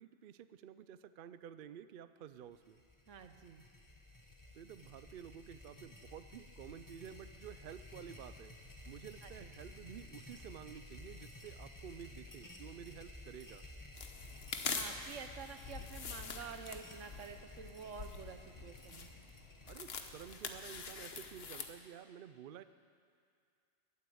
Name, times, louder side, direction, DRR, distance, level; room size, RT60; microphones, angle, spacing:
voice 1, 0.0-2.8 4.5-8.5 8.9-13.6 19.6-22.6, right 9 dB, 60° right, 13 dB, 0.6 m, -51 dB
sound 1, 2.5-21.6, left 2 dB, 15° left, 1.2 m, -54 dB
voice 2, 3.1-3.6 9.2-9.5 14.7-19.3, right 6 dB, 85° right, 8 dB, 1.2 m, -49 dB
sound 2, 14.0-21.7, left 5 dB, 55° left, 1.2 m, -45 dB
21.0 x 8.3 x 7.8 m, 2.3 s
omnidirectional pair, 1.2 m